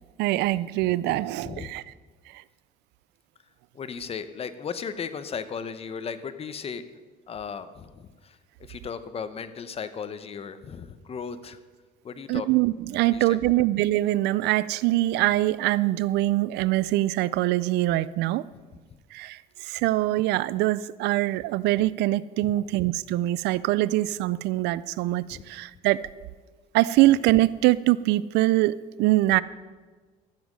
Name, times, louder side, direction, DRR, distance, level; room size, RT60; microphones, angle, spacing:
voice 1, 0.2-1.8 12.3-18.4 19.1-26.1 26.7-29.4, right 16 dB, 85° right, 19 dB, 0.4 m, -23 dB
voice 2, 1.1-1.7 3.7-6.8 7.3-8.4 8.7-11.6 12.0-12.5 13.1-13.4 22.4-22.5 25.3-25.4, left 6 dB, 35° left, 12 dB, 0.8 m, -36 dB
13.5 x 7.3 x 6.2 m, 1.4 s
cardioid pair, 110°, 17 cm